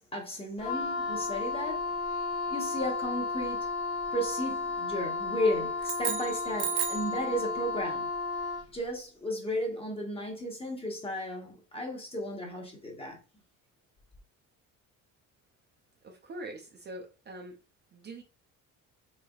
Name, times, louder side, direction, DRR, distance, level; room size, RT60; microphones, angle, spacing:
voice 1, 0.0-2.0 2.5-3.6 4.1-8.1 8.7-13.2, equal, 15° left, 0.9 m, -34 dB
Wind instrument woodwind instrument, 0.6-8.8, left 3 dB, 40° left, 0.8 m, -33 dB
sound 1, 5.8-7.2, right 10 dB, 85° right, 0.6 m, -33 dB
voice 2, 16.0-17.6 17.9-18.2, right 1 dB, 30° right, 0.5 m, -43 dB
3.3 x 3.3 x 2.3 m
cardioid pair, 135°, 34 cm